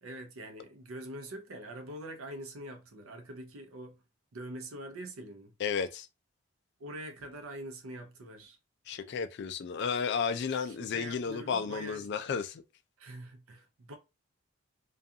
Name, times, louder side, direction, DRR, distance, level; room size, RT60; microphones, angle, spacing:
voice 1, 0.0-4.0 4.3-5.5 6.8-8.6 10.5-12.1 13.0-14.0, right 1 dB, 75° right, 0.6 m, -44 dB
voice 2, 5.6-6.1 8.9-12.6, left 6 dB, 50° left, 0.3 m, -33 dB
2.3 x 2.3 x 2.7 m
head